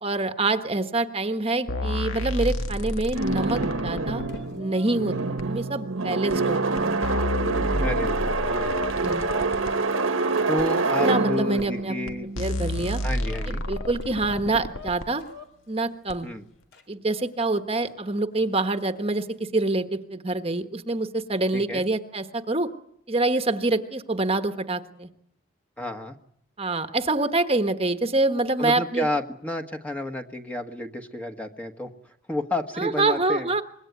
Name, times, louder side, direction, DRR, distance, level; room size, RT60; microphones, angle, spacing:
voice 1, 0.0-4.2 4.5-7.0 9.0-9.2 11.0-11.9 12.4-13.0 13.5-15.2 15.7-16.3 16.9-22.7 23.1-25.1 26.6-29.1 32.8-33.6, right 2 dB, 30° right, 8 dB, 1.3 m, -26 dB
sound 1, 1.7-4.4 5.4-5.5 6.3-6.4 6.8-9.7 10.6-10.7 11.6-11.7 12.1-12.2 12.4-15.1 16.1-16.2, left 1 dB, 75° left, 1.9 m, -30 dB
sound 2, 3.1-13.1, right 3 dB, 75° right, 1.5 m, -26 dB
Chicken rooster, 3.2-6.6 7.2-7.3 7.5-11.6 12.2-15.5 16.7-16.8 17.8-17.9 18.9-19.2, left 5 dB, 55° left, 4.2 m, -42 dB
voice 2, 7.8-9.4 10.5-12.3 13.0-13.6 16.2-16.4 21.5-21.8 25.8-26.2 28.6-33.5, left 1 dB, 5° left, 5 dB, 1.4 m, -31 dB
25.5 x 21.5 x 9.5 m, 0.71 s
head